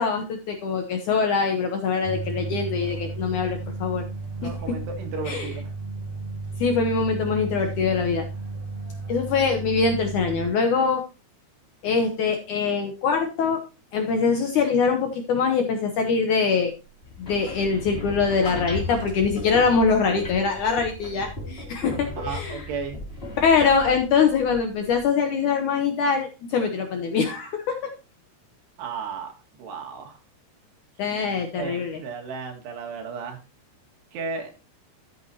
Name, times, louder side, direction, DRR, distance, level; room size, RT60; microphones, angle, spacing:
voice 1, 0.0-4.0 4.4-4.5 5.3-5.5 6.6-8.3 9.1-11.0 11.8-13.6 13.9-16.7 17.2-22.6 23.4-27.8 31.0-32.0, left 5 dB, 70° left, 4 dB, 1.9 m, -23 dB
sound 1, 2.0-10.5, right 3 dB, 60° right, 1.8 m, -33 dB
voice 2, 4.4-5.7 22.2-23.0 28.8-30.2 31.6-33.4 34.1-34.5, right 5 dB, 80° right, 3 dB, 4.0 m, -34 dB
sound 2, 17.0-25.0, left 2 dB, 20° left, 2.1 m, -36 dB
13.0 x 8.3 x 2.8 m, 0.31 s
omnidirectional pair, 4.7 m